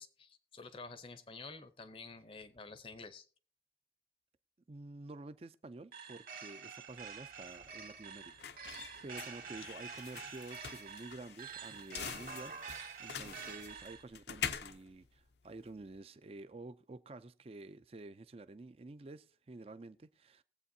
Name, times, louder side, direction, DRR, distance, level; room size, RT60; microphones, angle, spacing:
voice 1, 0.0-3.3, left 3 dB, 30° left, 0.6 m, -50 dB
voice 2, 4.7-8.8 9.0-12.6 13.0-20.4, right 2 dB, 35° right, 0.4 m, -50 dB
sound 1, 5.9-14.0, right 6 dB, 50° right, 1.4 m, -48 dB
sound 2, 6.9-16.0, left 7 dB, 70° left, 0.6 m, -46 dB
21.0 x 8.0 x 2.7 m
head